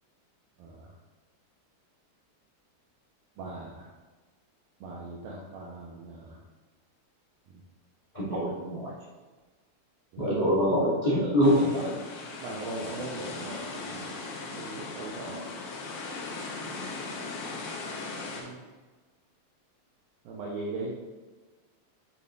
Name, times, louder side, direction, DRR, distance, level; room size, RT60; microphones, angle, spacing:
voice 1, 0.6-0.9 3.4-3.9 4.8-6.4 7.5-7.6 10.1-10.8 11.2-12.0 12.4-14.2 14.6-15.5 16.7-17.0 18.3-18.6 20.3-20.9, right 2 dB, 90° right, -3 dB, 2.1 m, -39 dB
voice 2, 8.1-8.9 10.2-11.6, equal, 40° left, -11 dB, 0.6 m, -24 dB
sound 1, 11.4-18.4, left 3 dB, 70° left, 2.5 m, -38 dB
8.2 x 6.9 x 2.5 m, 1.3 s
omnidirectional pair, 5.4 m